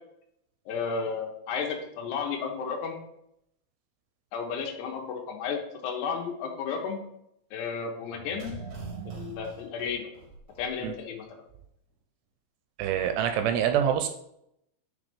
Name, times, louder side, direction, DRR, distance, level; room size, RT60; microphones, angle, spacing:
voice 1, 0.7-3.0 4.3-7.0 7.5-8.5 9.1-10.1 10.6-11.2, left 5 dB, 75° left, 2 dB, 3.0 m, -33 dB
sound 1, 8.1-10.9 11.2-11.3, right 5 dB, 65° right, 1.9 m, -42 dB
voice 2, 12.8-14.1, right 9 dB, 85° right, 7 dB, 2.6 m, -25 dB
9.0 x 5.1 x 3.4 m, 0.76 s
omnidirectional pair, 5.0 m